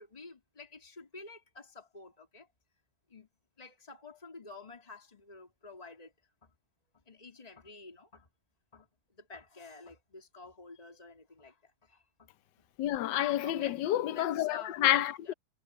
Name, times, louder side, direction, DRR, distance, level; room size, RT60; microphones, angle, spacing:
voice 1, 0.0-2.5 3.1-3.3 3.6-6.1 6.4-6.5 6.9-8.3 8.7-8.9 9.1-12.3 13.4-13.9 14.1-14.8 15.2-15.3, left 3 dB, 20° left, 3.2 m, -50 dB
voice 2, 12.8-15.3, left 13 dB, 65° left, 1.4 m, -29 dB
omnidirectional pair, 2.2 m